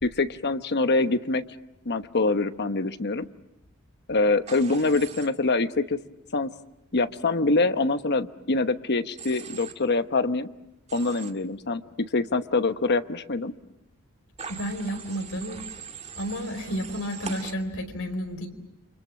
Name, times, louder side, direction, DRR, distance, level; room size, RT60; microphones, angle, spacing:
voice 1, 0.0-1.4 1.8-3.3 4.1-6.0 6.3-6.5 6.9-10.5 10.9-13.5, left 3 dB, 50° left, 10 dB, 1.1 m, -25 dB
Human voice / Train, 4.5-5.3 9.2-9.7 10.9-11.3 14.4-17.5, right 6 dB, 30° right, 1.9 m, -41 dB
voice 2, 14.5-15.6 16.2-18.5, equal, 65° left, 6 dB, 4.6 m, -31 dB
29.5 x 26.0 x 7.5 m, 0.87 s
head